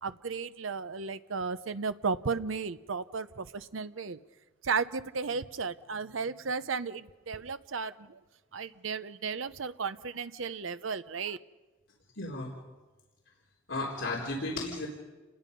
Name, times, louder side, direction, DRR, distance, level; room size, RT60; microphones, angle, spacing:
voice 1, 0.0-4.2 4.6-8.2 8.5-11.4, right 5 dB, 90° right, 12 dB, 0.8 m, -34 dB
voice 2, 12.2-12.5 13.7-14.9, left 2 dB, 75° left, -2 dB, 3.9 m, -34 dB
29.0 x 20.5 x 5.3 m, 1.2 s
head